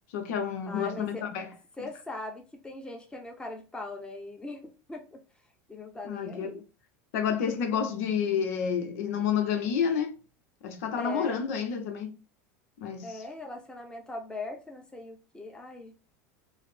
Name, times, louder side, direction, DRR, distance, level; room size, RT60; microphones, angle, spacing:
voice 1, 0.1-1.5 6.0-6.6 7.1-10.2 10.6-12.2 12.8-13.2, left 7 dB, 75° left, 0.8 m, -29 dB
voice 2, 0.7-1.3 1.8-5.2 5.7-6.6 10.9-11.4 13.0-15.9, left 2 dB, 10° left, 0.9 m, -40 dB
4.6 x 2.1 x 3.3 m
supercardioid pair, 110°, 8 cm